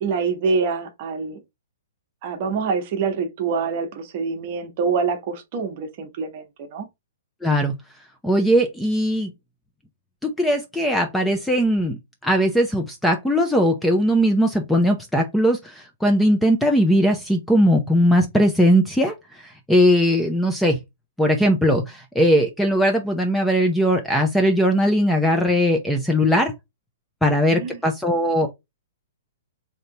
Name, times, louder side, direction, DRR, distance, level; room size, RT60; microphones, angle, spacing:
voice 1, 0.0-1.4 2.2-6.9 27.5-27.8, right 5 dB, 40° right, 1.0 m, -25 dB
voice 2, 7.4-7.7 8.2-9.3 10.2-20.8 21.2-26.5 27.2-28.5, equal, 5° left, 0.5 m, -19 dB
3.3 x 2.7 x 3.8 m
hypercardioid pair, 160°, 0 cm